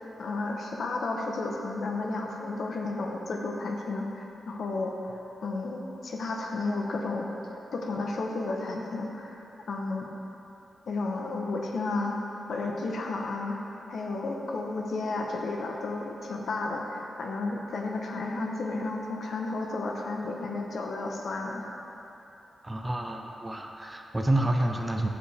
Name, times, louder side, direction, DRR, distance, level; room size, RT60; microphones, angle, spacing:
voice 1, 0.2-7.3 7.7-9.4 9.7-10.1 10.9-12.2 12.5-13.6 13.9-21.7, left 3 dB, 70° left, 0 dB, 0.9 m, -32 dB
voice 2, 22.6-25.1, right 1 dB, 20° right, 3 dB, 0.7 m, -28 dB
14.0 x 5.0 x 3.4 m, 3.0 s
cardioid pair, 80°, 0 cm